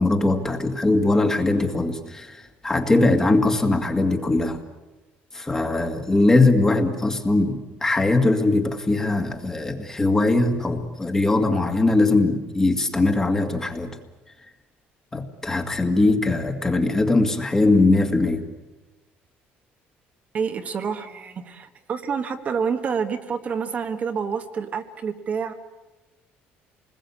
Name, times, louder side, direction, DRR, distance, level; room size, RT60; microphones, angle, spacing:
voice 1, 0.0-4.6 5.3-13.9 15.1-18.4, left 2 dB, 15° left, 5 dB, 2.1 m, -21 dB
voice 2, 20.3-25.5, right 6 dB, 35° right, 6 dB, 1.5 m, -28 dB
27.5 x 20.5 x 8.6 m, 1.1 s
cardioid pair, 150°, 4 cm